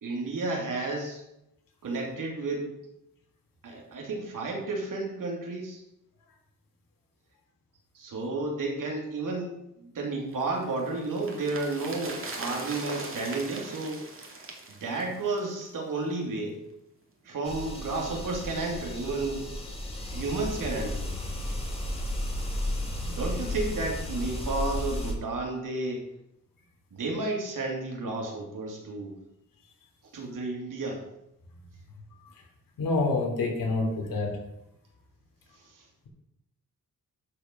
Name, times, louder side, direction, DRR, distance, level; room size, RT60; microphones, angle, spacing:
voice 1, 0.0-1.2 1.8-2.7 3.6-5.8 7.9-14.1 14.7-16.6 17.2-19.5 20.1-21.1 23.1-26.1 26.9-29.2 30.1-31.1 35.5-35.9, right 3 dB, 70° right, 0 dB, 3.0 m, -32 dB
sound 1, 10.4-15.8 16.1-16.2, right 3 dB, 40° right, 2.6 m, -40 dB
sound 2, 17.4-25.1, left 1 dB, 15° left, 2.5 m, -33 dB
voice 2, 32.8-34.3, left 3 dB, 80° left, 0 dB, 3.4 m, -27 dB
12.5 x 6.2 x 5.5 m, 0.84 s
cardioid pair, 105°, 33 cm